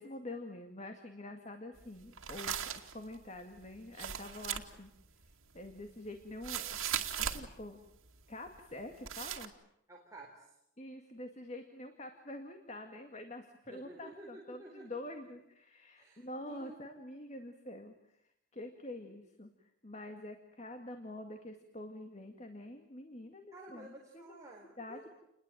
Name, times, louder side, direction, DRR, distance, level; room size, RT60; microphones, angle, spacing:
voice 1, 0.0-4.9 5.5-6.8 7.2-7.8 8.3-9.5 10.8-17.9 18.5-19.5 19.8-24.4 24.8-25.1, left 1 dB, 35° left, 5 dB, 2.1 m, -46 dB
sound 1, 1.8-7.5 7.9-8.2 8.5-8.8 9.0-9.5, right 9 dB, 85° right, 2.4 m, -38 dB
voice 2, 9.9-10.5 13.7-14.9 16.0-16.8 23.5-25.1, right 1 dB, 15° right, -1 dB, 4.0 m, -52 dB
29.5 x 21.0 x 9.2 m, 0.80 s
head